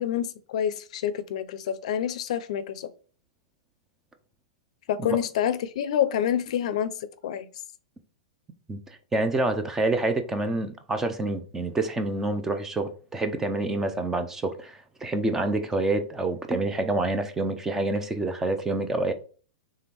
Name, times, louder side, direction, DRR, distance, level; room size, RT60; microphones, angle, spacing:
voice 1, 0.0-2.9 4.9-7.5, left 9 dB, 65° left, 0.5 m, -27 dB
voice 2, 8.7-19.1, right 2 dB, 10° right, 0.5 m, -27 dB
3.5 x 3.4 x 4.4 m
hypercardioid pair, 145°, 4 cm